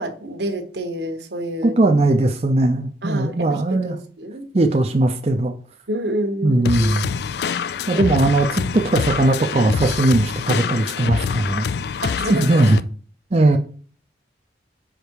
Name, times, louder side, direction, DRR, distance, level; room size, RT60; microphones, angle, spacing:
voice 1, 0.0-1.8 3.0-4.5 5.9-7.0 7.9-8.1 12.0-12.6, right 1 dB, 75° right, 6 dB, 1.2 m, -28 dB
voice 2, 1.6-4.0 4.5-5.5 6.4-7.1 7.9-11.7 12.3-12.8 13.3-13.6, right 2 dB, 35° right, 4 dB, 0.6 m, -18 dB
sound 1, 6.6-12.8, left 6 dB, 65° left, 0.3 m, -25 dB
5.5 x 5.1 x 4.7 m, 0.42 s
head